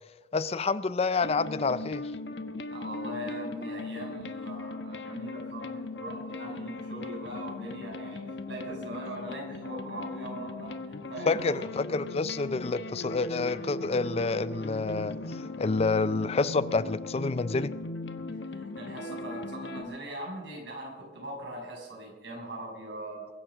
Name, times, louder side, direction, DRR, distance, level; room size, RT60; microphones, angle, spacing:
voice 1, 0.3-2.0 11.3-17.7, left 3 dB, 35° left, 16 dB, 0.4 m, -28 dB
sound 1, 1.2-19.8, left 2 dB, 80° left, 1.1 m, -38 dB
voice 2, 2.7-11.6 18.4-23.2, right 1 dB, 80° right, -1 dB, 6.3 m, -41 dB
22.5 x 7.5 x 6.2 m, 1.2 s
head